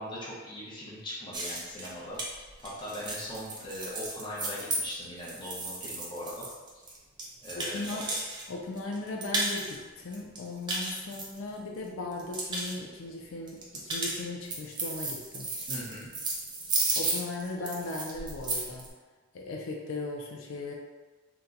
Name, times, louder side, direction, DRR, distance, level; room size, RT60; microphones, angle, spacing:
voice 1, 0.0-2.2 2.6-6.5 7.4-8.1 15.7-16.1, left 1 dB, 25° left, -7 dB, 0.8 m, -40 dB
sound 1, 1.3-8.4 8.8-9.8 10.1-11.8 12.1-12.7 13.5-18.9, right 2 dB, 20° right, 0.4 m, -34 dB
voice 2, 7.6-8.0 8.5-15.5 16.9-18.9 19.3-20.7, left 2 dB, 80° left, 0 dB, 0.4 m, -37 dB
2.9 x 2.2 x 3.7 m, 1.3 s
head